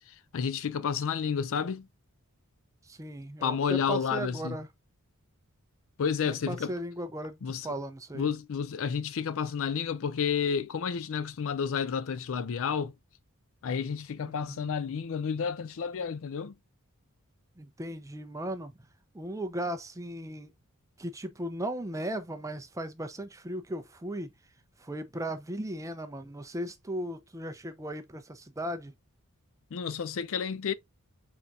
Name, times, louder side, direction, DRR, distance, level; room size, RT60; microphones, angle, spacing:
voice 1, 0.3-1.9 3.4-4.6 6.0-6.7 7.4-7.7 8.1-12.9 13.6-16.5 29.7-30.7, left 6 dB, 65° left, 0.4 m, -30 dB
voice 2, 2.8-4.7 6.3-8.3 14.3-14.7 17.6-18.7 19.1-20.5 21.0-24.3 24.8-28.9, right 1 dB, 15° right, 0.5 m, -37 dB
4.6 x 4.1 x 2.4 m
head